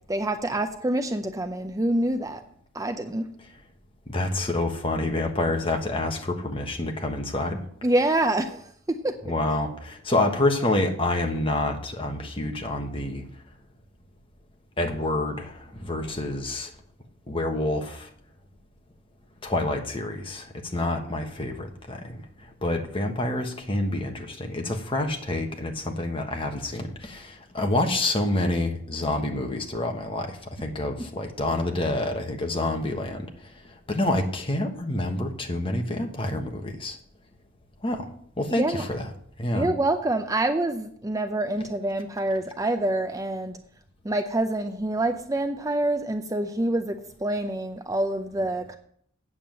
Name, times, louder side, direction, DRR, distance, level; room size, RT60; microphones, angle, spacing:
voice 1, 0.1-2.4 2.7-3.3 7.8-9.1 38.6-38.8 39.5-43.6 44.0-48.8, right 1 dB, 15° right, 7 dB, 0.5 m, -26 dB
voice 2, 4.1-7.6 9.2-13.2 14.8-16.7 17.3-18.1 19.4-37.0 37.8-38.1 38.4-39.1 39.4-39.7, left 1 dB, 25° left, 3 dB, 1.3 m, -28 dB
8.6 x 7.2 x 7.4 m, 0.63 s
head